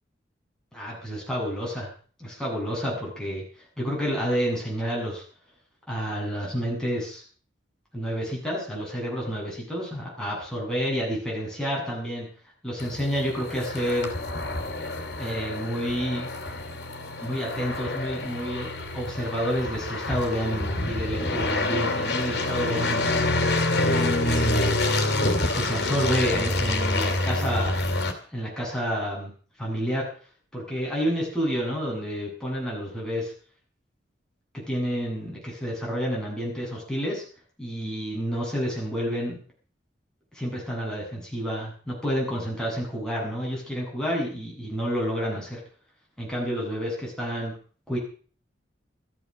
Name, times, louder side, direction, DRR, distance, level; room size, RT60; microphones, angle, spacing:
voice 1, 0.7-1.9 2.2-3.4 3.8-5.2 5.9-7.2 7.9-12.3 12.6-14.1 15.2-16.3 17.2-18.7 18.9-23.1 23.7-24.8 25.5-27.8 28.3-29.3 29.6-30.1 30.5-33.3 34.7-37.2 37.6-39.4 40.3-45.6 46.2-47.5 47.9-48.0, equal, 5° left, -4 dB, 8.0 m, -29 dB
sound 1, 12.8-28.1, left 2 dB, 60° left, 3.1 m, -27 dB
14.5 x 14.0 x 6.5 m, 0.43 s
head